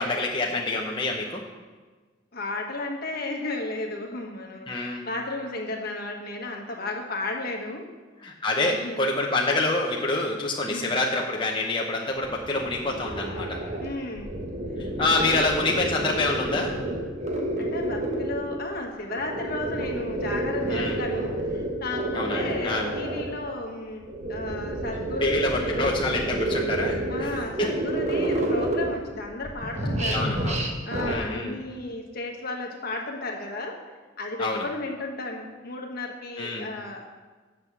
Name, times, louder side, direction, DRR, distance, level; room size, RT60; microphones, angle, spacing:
voice 1, 0.0-1.4 4.7-5.0 8.2-13.6 14.8-16.7 20.7-21.0 22.1-22.9 25.2-27.8 30.1-30.7 31.0-31.6 34.4-34.6 36.4-36.7, left 2 dB, 25° left, -1 dB, 0.7 m, -27 dB
voice 2, 2.3-7.9 8.6-9.0 10.7-11.0 13.8-14.3 15.0-15.4 17.6-26.0 27.1-30.3 30.8-33.8 34.2-37.1, left 2 dB, 50° left, 1 dB, 1.3 m, -34 dB
sound 1, 12.1-18.6 19.1-23.4 24.0-29.2 29.4-31.2, right 1 dB, 35° right, 1.1 m, -29 dB
7.9 x 6.1 x 6.7 m, 1.4 s
head